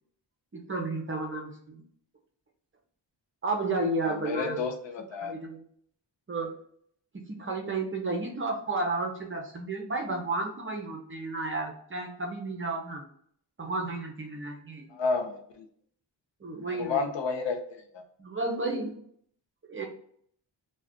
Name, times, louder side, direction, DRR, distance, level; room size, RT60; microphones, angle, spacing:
voice 1, 0.5-1.8 3.4-4.6 5.2-5.6 6.3-6.5 7.3-13.0 13.6-14.9 16.4-17.1 18.2-18.9 19.7-19.9, right 2 dB, 30° right, 1 dB, 0.5 m, -32 dB
voice 2, 4.0-5.4 14.9-15.7 16.7-17.6 17.9-18.0, left 4 dB, 75° left, 5 dB, 0.6 m, -31 dB
2.4 x 2.2 x 3.5 m, 0.64 s
wide cardioid pair, 135°, 44 cm